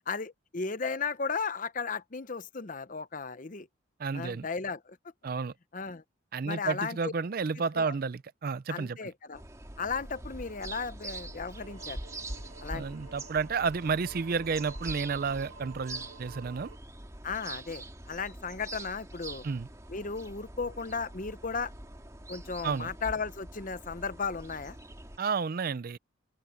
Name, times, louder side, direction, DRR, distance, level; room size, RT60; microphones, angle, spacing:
voice 1, 0.1-3.7 4.1-5.0 5.7-6.0 6.4-7.1 7.7-7.9 8.7-9.4 9.8-12.0 12.6-13.0 17.2-19.4 19.9-21.7 22.3-24.8, left 5 dB, 40° left, 0.8 m, -35 dB
voice 2, 4.0-4.5 5.2-5.5 6.3-9.0 12.7-16.7 19.4-19.7 22.6-22.9 25.2-26.0, right 5 dB, 45° right, 0.4 m, -31 dB
sound 1, 9.3-25.2, right 2 dB, 15° right, 2.2 m, -44 dB
sound 2, 11.6-16.8, right 4 dB, 75° right, 1.9 m, -51 dB
open air
head